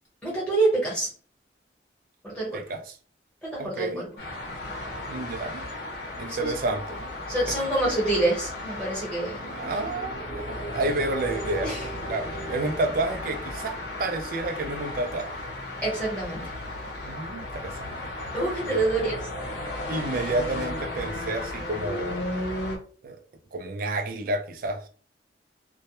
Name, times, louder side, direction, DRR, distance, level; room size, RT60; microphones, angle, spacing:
voice 1, 0.2-1.1 2.2-2.6 3.4-4.1 6.3-6.5 7.3-9.8 11.6-11.8 15.8-16.5 16.9-17.2 18.3-19.1, right 2 dB, 5° left, 1.0 m, -27 dB
voice 2, 2.5-3.0 3.6-4.1 5.1-5.7 6.2-7.1 7.5-7.6 9.5-11.7 12.1-15.4 17.0-18.0 18.7-18.9 19.9-22.2 23.0-23.2 23.5-24.9, right 2 dB, 50° right, 0.3 m, -30 dB
sound 1, 4.2-22.8, left 1 dB, 65° left, 0.7 m, -34 dB
2.1 x 2.0 x 2.8 m
head